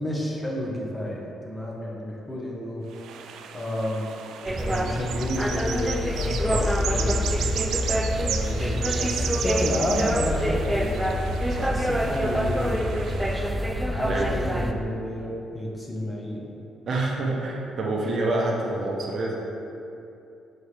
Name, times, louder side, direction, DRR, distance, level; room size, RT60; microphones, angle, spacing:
voice 1, 0.0-2.8 3.5-4.0 4.5-6.6 6.9-7.7 8.2-11.3 11.7-12.8 13.9-16.5, left 1 dB, 15° left, -2 dB, 1.0 m, -30 dB
sound 1, 2.9-13.5, right 8 dB, 80° right, 0.3 m, -35 dB
sound 2, 4.4-14.7, equal, 10° right, 0.4 m, -26 dB
voice 2, 16.9-19.4, right 2 dB, 55° right, -2 dB, 0.9 m, -27 dB
6.9 x 4.2 x 3.4 m, 2.7 s
cardioid pair, 90°, 0 cm